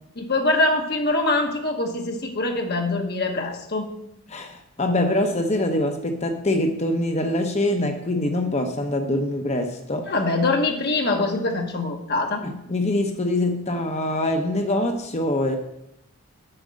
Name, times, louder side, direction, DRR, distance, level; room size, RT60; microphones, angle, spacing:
voice 1, 0.2-3.9 10.1-12.4, left 2 dB, 45° left, 3 dB, 1.4 m, -23 dB
voice 2, 4.3-10.1 12.4-15.6, left 1 dB, 30° left, 5 dB, 0.8 m, -24 dB
8.8 x 6.5 x 6.3 m, 0.78 s
head